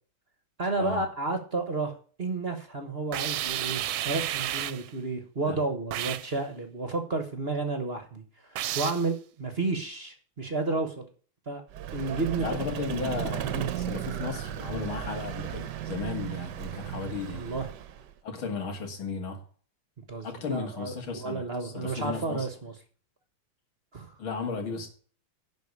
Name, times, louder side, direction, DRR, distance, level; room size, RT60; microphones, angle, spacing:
voice 1, 0.6-11.1 11.5-11.6 11.9-12.4 13.2-13.7 17.3-17.7 20.1-22.7 23.9-24.1, right 3 dB, 35° right, 1.2 m, -32 dB
sound 1, 3.1-4.9 5.9-6.3 8.6-9.1, right 13 dB, 90° right, 1.5 m, -31 dB
Vehicle, 11.7-18.1, right 10 dB, 65° right, 1.3 m, -35 dB
voice 2, 12.4-13.5 13.8-17.6 18.2-19.4 20.2-22.5 24.2-24.9, left 5 dB, 85° left, 3.0 m, -35 dB
11.5 x 5.2 x 8.4 m
omnidirectional pair, 2.2 m